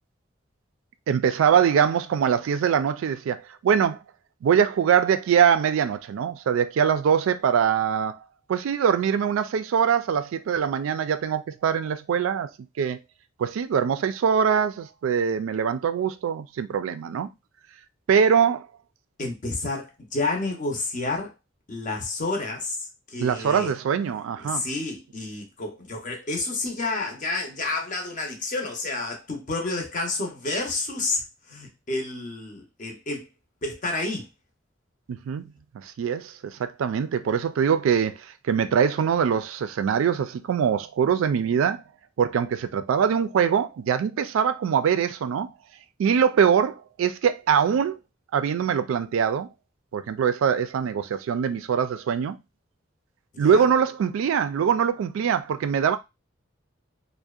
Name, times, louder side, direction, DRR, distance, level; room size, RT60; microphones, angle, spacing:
voice 1, 1.1-4.0 4.4-8.2 8.5-12.5 12.8-13.0 13.4-17.3 18.1-18.7 23.2-24.7 35.1-35.4 35.7-41.8 42.2-45.5 46.0-48.0 48.3-49.5 49.9-52.4 53.4-56.0, right 7 dB, 80° right, 0.3 m, -23 dB
voice 2, 19.2-21.3 21.7-23.7 24.4-31.2 31.5-33.3 33.6-34.3 53.3-53.6, left 2 dB, 40° left, 0.6 m, -30 dB
2.6 x 2.1 x 2.3 m
head